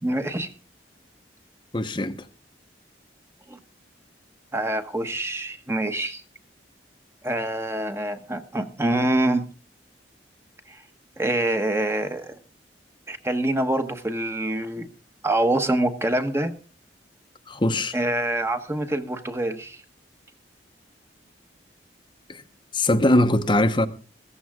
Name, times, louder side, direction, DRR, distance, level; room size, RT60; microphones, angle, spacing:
voice 1, 0.0-0.5 3.5-3.6 4.5-6.2 7.2-9.4 10.7-10.8 11.2-12.3 13.1-14.9 15.2-16.5 17.9-19.8, right 1 dB, 15° right, 1.1 m, -25 dB
voice 2, 1.7-2.2 17.5-17.9 22.3-22.4 22.7-23.9, left 1 dB, 25° left, 0.9 m, -21 dB
16.0 x 14.0 x 3.6 m
head